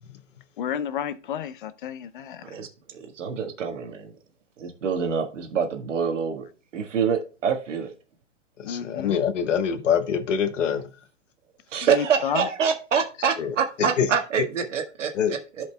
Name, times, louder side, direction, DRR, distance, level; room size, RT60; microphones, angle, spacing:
voice 1, 0.0-0.4 8.6-11.1 13.4-14.1 15.1-15.3, left 7 dB, 90° left, 1.3 m, -26 dB
voice 2, 0.6-2.6 8.6-9.2 11.9-12.5, left 9 dB, 45° left, 0.7 m, -31 dB
voice 3, 2.9-4.1 4.6-6.4 6.7-7.9 11.7-15.1, right 6 dB, 85° right, 1.6 m, -26 dB
14.5 x 5.2 x 2.2 m
hypercardioid pair, 170°, 36 cm